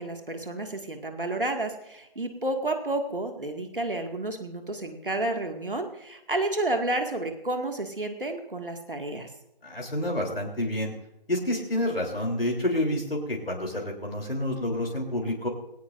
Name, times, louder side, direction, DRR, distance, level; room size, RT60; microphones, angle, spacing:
voice 1, 0.0-9.3, right 2 dB, 65° right, 4 dB, 2.2 m, -31 dB
voice 2, 9.6-10.9 11.3-15.5, left 1 dB, 75° left, 0 dB, 3.5 m, -28 dB
19.0 x 17.5 x 2.6 m, 0.84 s
figure-of-eight pair, 160°, 29 cm